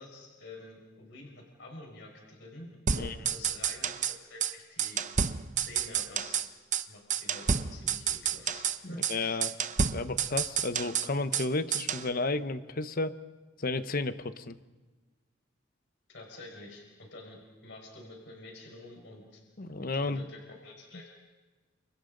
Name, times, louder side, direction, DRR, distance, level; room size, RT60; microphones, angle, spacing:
voice 1, 0.0-5.0 5.6-6.5 6.9-9.4 16.1-19.4 19.9-21.1, left 2 dB, 70° left, 0 dB, 5.4 m, -48 dB
sound 1, 2.9-4.1 4.4-4.5 4.8-6.5 6.7-6.8 7.1-8.8 9.0-9.1 9.4-11.5 11.7-12.1, right 7 dB, 40° right, 0.8 m, -30 dB
voice 2, 9.1-9.5 9.9-13.2 13.6-14.6 19.6-20.3, left 3 dB, 50° left, 11 dB, 1.0 m, -32 dB
30.0 x 27.5 x 3.9 m, 1.3 s
head